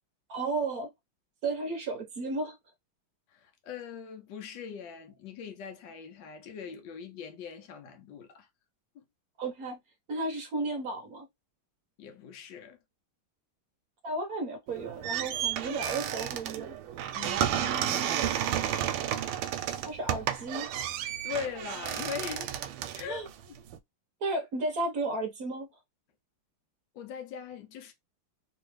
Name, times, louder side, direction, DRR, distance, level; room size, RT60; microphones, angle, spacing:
voice 1, 0.3-0.9 1.4-2.6 9.4-9.8 10.1-11.3 14.0-16.7 17.5-18.4 19.8-20.7 23.1-23.3 24.2-25.7, right 2 dB, 60° right, 1.0 m, -34 dB
voice 2, 3.3-8.5 8.9-9.0 12.0-12.8 17.1-17.5 21.2-22.5 22.9-23.6 24.3-24.4 26.9-27.9, left 7 dB, 65° left, 1.4 m, -41 dB
sound 1, 14.7-23.8, right 10 dB, 90° right, 1.5 m, -32 dB
3.4 x 3.0 x 3.1 m
omnidirectional pair, 2.3 m